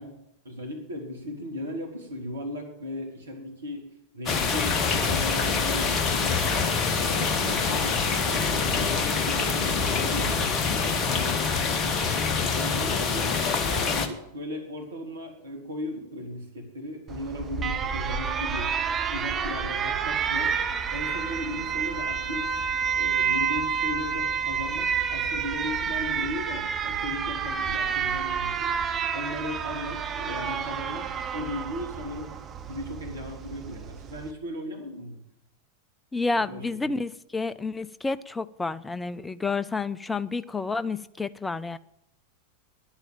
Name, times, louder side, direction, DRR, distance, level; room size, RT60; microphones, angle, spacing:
voice 1, 0.0-6.5 6.9-12.0 12.4-18.8 19.1-20.6 20.9-22.6 22.9-28.8 29.1-32.4 32.6-35.2 36.3-36.9, left 1 dB, 75° right, 3.1 m, -37 dB
sound 1, 4.3-14.1, left 5 dB, 30° left, 1.3 m, -25 dB
Alarm, 17.1-34.3, right 7 dB, 25° right, 1.0 m, -29 dB
voice 2, 36.1-41.8, left 3 dB, 10° left, 0.5 m, -30 dB
10.5 x 8.9 x 8.8 m
figure-of-eight pair, 90°, 0 cm